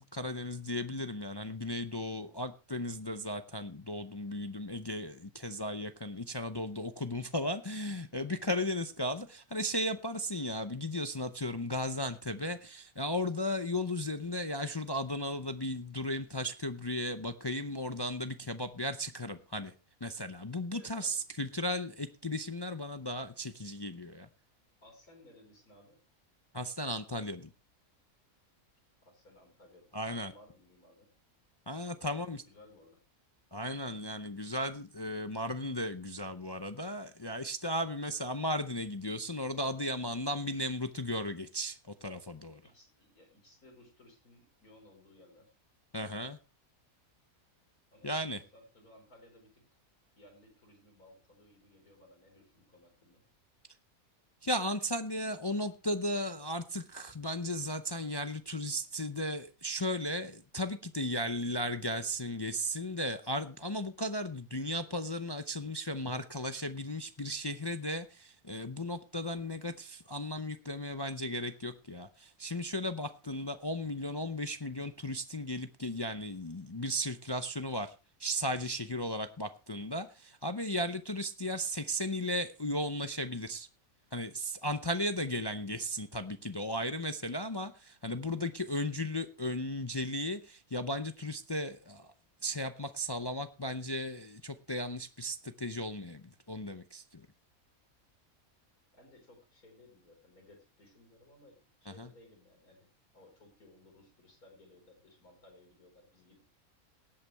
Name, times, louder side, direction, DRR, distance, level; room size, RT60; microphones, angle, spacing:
voice 1, 0.0-19.7 20.0-24.3 26.5-27.5 29.9-30.3 31.7-32.4 33.5-42.6 45.9-46.4 48.0-48.4 54.4-77.9 78.2-83.7 84.1-92.1 92.4-97.2 102.0-102.1, left 1 dB, 40° left, 9 dB, 0.3 m, -35 dB
voice 2, 20.7-21.2 24.8-26.0 29.0-31.1 31.8-33.0 42.6-45.5 47.9-49.6 50.2-53.2 98.9-106.4, left 1 dB, 90° left, 2 dB, 5.3 m, -59 dB
18.5 x 8.4 x 3.4 m, 0.31 s
omnidirectional pair, 1.5 m